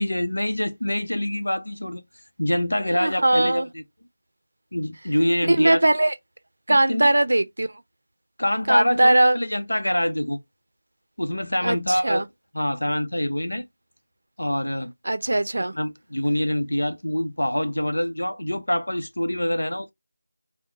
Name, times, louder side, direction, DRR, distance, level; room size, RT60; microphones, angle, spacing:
voice 1, 0.0-2.0 2.4-3.8 4.7-5.8 6.7-7.1 8.4-10.4 11.2-12.2 12.5-13.7 14.4-14.9 15.7-19.9, left 1 dB, 85° left, 0.6 m, -25 dB
voice 2, 2.9-3.7 5.4-6.1 6.7-7.7 8.7-9.4 11.6-12.3 15.0-15.7, right 1 dB, 70° right, 0.5 m, -20 dB
3.7 x 2.1 x 2.8 m
figure-of-eight pair, 165°, 0 cm